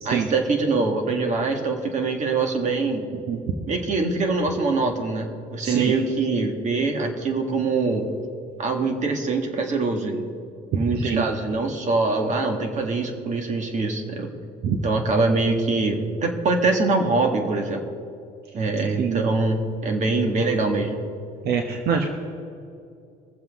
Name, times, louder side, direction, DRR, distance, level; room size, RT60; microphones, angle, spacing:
voice 1, 0.0-3.1 3.7-8.1 8.6-10.3 10.7-14.3 14.8-17.8 18.5-21.0, right 3 dB, 45° right, 4 dB, 1.9 m, -23 dB
voice 2, 5.6-6.0 10.9-11.3 14.6-14.8 19.0-19.2 21.4-22.1, right 6 dB, 70° right, 3 dB, 1.1 m, -25 dB
22.5 x 7.5 x 3.7 m, 2.5 s
cardioid pair, 110°, 17 cm